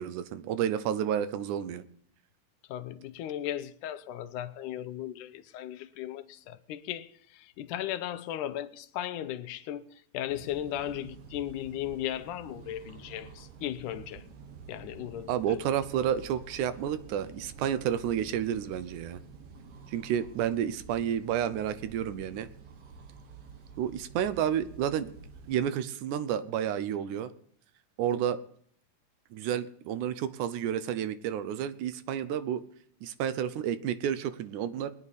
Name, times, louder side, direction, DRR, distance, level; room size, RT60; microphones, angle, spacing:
voice 1, 0.0-1.8 15.3-19.2 19.9-22.5 23.8-25.1 25.5-27.3 28.0-28.4 29.3-32.6 33.0-34.9, right 9 dB, 80° right, 2.2 m, -30 dB
voice 2, 2.7-14.3 14.7-15.6, left 11 dB, 90° left, 2.2 m, -36 dB
sound 1, 10.3-25.6, right 5 dB, 60° right, 1.9 m, -49 dB
22.5 x 9.8 x 4.1 m
omnidirectional pair, 3.5 m